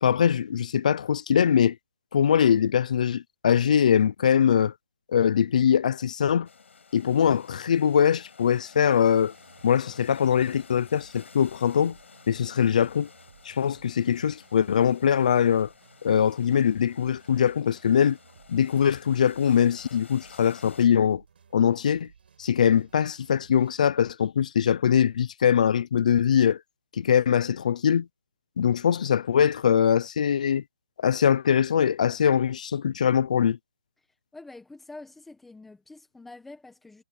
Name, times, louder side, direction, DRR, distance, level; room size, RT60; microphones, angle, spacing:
voice 1, 0.0-1.8 2.1-4.7 5.1-6.5 6.9-9.3 9.6-12.0 12.3-13.1 13.5-15.7 16.0-18.2 18.5-21.2 21.5-22.1 22.4-26.6 26.9-28.1 28.6-30.6 31.0-33.6, left 8 dB, 30° left, 0.4 m, -22 dB
sound 1, 6.5-20.9, left 5 dB, 60° left, 6.2 m, -52 dB
sound 2, 9.1-23.9, right 6 dB, 45° right, 4.7 m, -57 dB
voice 2, 34.3-37.0, left 2 dB, ahead, 1.4 m, -46 dB
hypercardioid pair, 175°, 7 cm